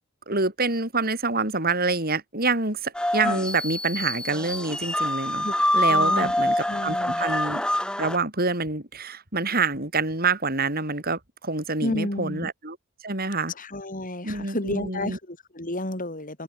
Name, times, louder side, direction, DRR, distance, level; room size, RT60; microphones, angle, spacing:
voice 1, 0.3-5.5 5.7-7.6 8.0-12.8 13.0-13.5 14.2-15.2, right 3 dB, 45° right, 6.2 m, -27 dB
sound 1, 2.9-8.2, left 1 dB, 5° left, 1.4 m, -25 dB
voice 2, 5.9-6.3 6.7-7.2 11.8-12.5 13.6-16.4, left 1 dB, 40° left, 3.8 m, -31 dB
head